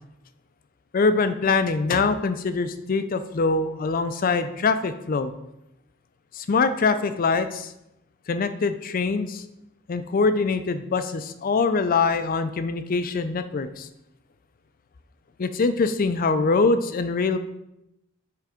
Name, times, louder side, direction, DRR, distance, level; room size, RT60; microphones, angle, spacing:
voice 1, 0.9-5.3 6.3-7.7 8.3-9.4 9.9-13.9 15.4-17.4, left 4 dB, 40° left, 11 dB, 0.4 m, -23 dB
7.4 x 3.4 x 5.0 m, 0.86 s
head